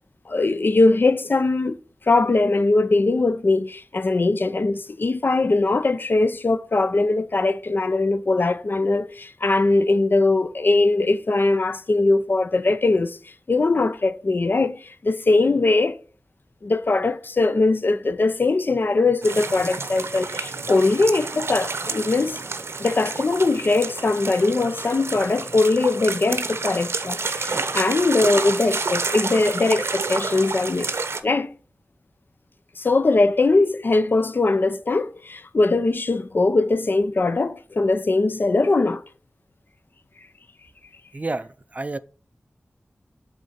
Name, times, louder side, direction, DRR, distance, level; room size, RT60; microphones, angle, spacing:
voice 1, 0.3-1.8 2.1-16.0 16.6-22.4 22.8-30.9 31.2-31.5 32.8-39.0, left 3 dB, 50° left, 0.5 m, -21 dB
sound 1, 19.2-31.2, right 4 dB, 75° right, 0.7 m, -29 dB
voice 2, 41.1-42.0, right 2 dB, 35° right, 0.4 m, -30 dB
8.1 x 3.7 x 4.2 m
wide cardioid pair, 90°, 4 cm